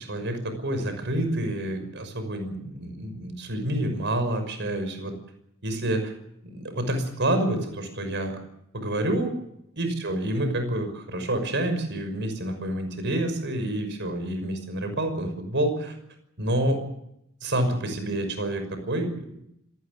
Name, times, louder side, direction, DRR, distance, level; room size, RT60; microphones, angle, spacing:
voice 1, 0.1-5.1 5.6-6.1 6.4-8.4 8.7-9.3 9.8-16.0 16.4-16.8 17.4-19.3, right 1 dB, 60° right, 8 dB, 6.0 m, -28 dB
26.0 x 19.0 x 6.8 m, 0.79 s
head